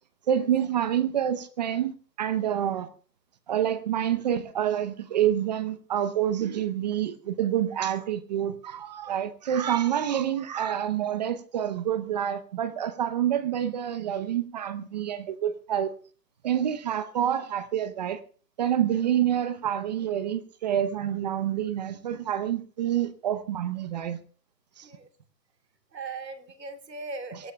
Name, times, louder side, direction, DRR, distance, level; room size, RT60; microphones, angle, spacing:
voice 1, 0.3-2.9 3.5-15.9 16.4-18.2 18.6-24.2 24.8-24.9, right 10 dB, 25° right, 0.7 m, -27 dB
voice 2, 25.9-27.5, right 3 dB, 80° right, 3.1 m, -39 dB
23.5 x 18.0 x 2.3 m
hypercardioid pair, 145°, 49 cm